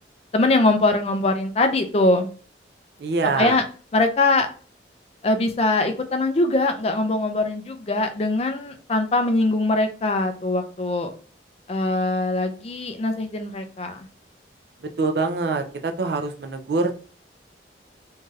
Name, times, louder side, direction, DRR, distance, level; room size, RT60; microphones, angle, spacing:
voice 1, 0.3-2.3 3.4-3.6 3.9-4.5 5.2-11.1 11.7-14.1, left 2 dB, 35° left, 6 dB, 0.4 m, -22 dB
voice 2, 3.0-3.6 15.0-16.9, right 3 dB, 60° right, 5 dB, 0.4 m, -24 dB
3.1 x 2.7 x 2.3 m, 0.39 s
head